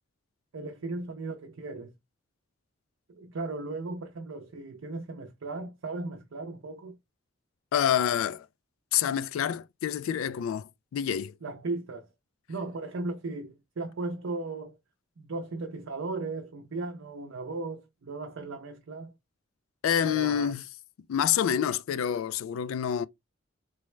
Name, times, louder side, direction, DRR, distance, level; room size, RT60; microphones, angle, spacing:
voice 1, 0.5-1.9 3.1-7.0 11.4-12.1 12.5-14.8 15.2-19.1 20.0-20.5, right 3 dB, 80° right, 0.6 m, -36 dB
voice 2, 7.7-8.5 8.9-11.3 19.8-20.6 21.1-23.1, left 9 dB, 85° left, 0.3 m, -27 dB
3.4 x 2.1 x 3.1 m
head